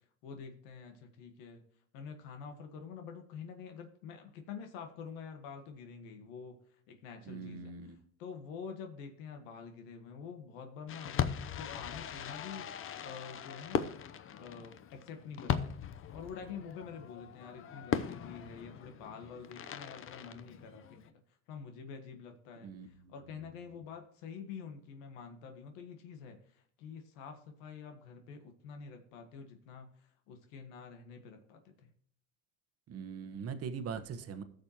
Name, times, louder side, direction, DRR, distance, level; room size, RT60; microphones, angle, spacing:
voice 1, 0.2-1.6 1.9-13.9 14.3-21.1 21.5-31.9, left 6 dB, 75° left, 5 dB, 1.6 m, -47 dB
voice 2, 7.2-8.0 22.6-23.8 32.9-34.4, right 6 dB, 40° right, 10 dB, 1.2 m, -42 dB
Fireworks, 10.9-21.1, left 8 dB, 35° left, 0.7 m, -39 dB
15.5 x 6.6 x 2.9 m, 0.63 s
supercardioid pair, 105°, 38 cm